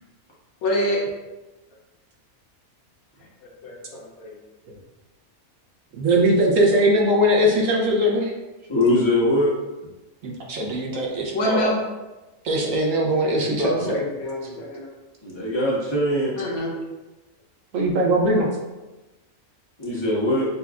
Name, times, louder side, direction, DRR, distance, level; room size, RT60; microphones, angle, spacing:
voice 1, 0.6-1.0 3.6-4.3 11.3-11.8 13.3-14.9 16.3-16.7, left 1 dB, 75° left, -2 dB, 1.3 m, -26 dB
voice 2, 6.0-8.3 10.2-11.7 12.4-13.9 17.7-18.5, right 1 dB, 65° right, -1 dB, 1.1 m, -20 dB
voice 3, 8.7-9.5 15.2-16.3 19.8-20.5, left 1 dB, 20° left, -7 dB, 1.1 m, -21 dB
6.9 x 2.3 x 2.4 m, 1.1 s
omnidirectional pair, 1.5 m